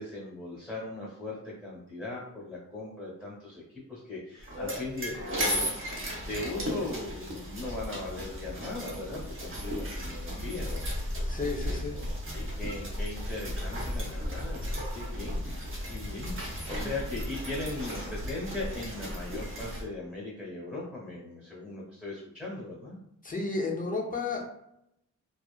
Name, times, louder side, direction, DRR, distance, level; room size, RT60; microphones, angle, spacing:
voice 1, 0.0-5.6 6.2-11.0 11.7-12.0 12.3-23.0, left 2 dB, ahead, -7 dB, 0.9 m, -39 dB
Horse and Carriage, 4.4-19.8, equal, 40° right, 0.7 m, -35 dB
voice 2, 11.3-12.0 23.2-24.5, left 3 dB, 25° left, -1 dB, 0.4 m, -32 dB
2.7 x 2.3 x 2.3 m, 0.80 s
wide cardioid pair, 125°, 32 cm